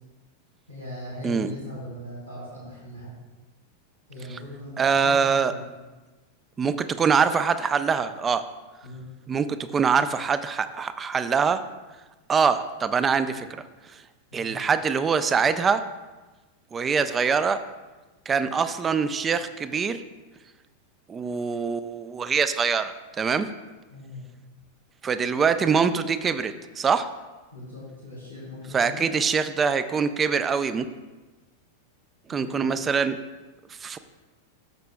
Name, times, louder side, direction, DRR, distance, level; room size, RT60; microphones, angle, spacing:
voice 1, 0.7-3.1 4.1-5.7 8.8-9.1 14.3-14.5 23.9-24.2 27.5-29.1 32.3-32.8, left 1 dB, 85° right, -6 dB, 2.8 m, -39 dB
voice 2, 4.8-5.5 6.6-8.5 9.3-11.7 12.3-13.6 13.9-14.0 14.3-15.9 16.7-17.7 18.3-20.0 21.1-23.5 25.0-27.1 28.7-30.9 32.3-33.2 33.8-34.0, right 6 dB, 20° right, 12 dB, 0.5 m, -24 dB
13.0 x 6.7 x 2.2 m, 1.2 s
figure-of-eight pair, 90°, 0 cm